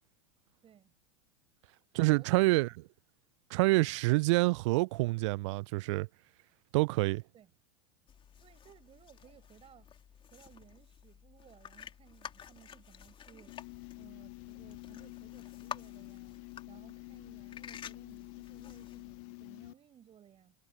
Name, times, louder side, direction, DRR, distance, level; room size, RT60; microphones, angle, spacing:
voice 1, 0.6-0.9 1.9-2.8 3.7-3.9 7.3-7.5 8.4-9.9 10.3-16.4 16.7-20.6, right 9 dB, 30° right, 6.4 m, -60 dB
voice 2, 2.0-2.7 3.5-6.1 6.7-7.2, right 23 dB, 55° right, 0.4 m, -27 dB
sound 1, 8.1-19.2, left 8 dB, 30° left, 3.5 m, -51 dB
sound 2, 13.5-19.7, left 35 dB, 50° left, 0.5 m, -48 dB
hypercardioid pair, 85°, 18 cm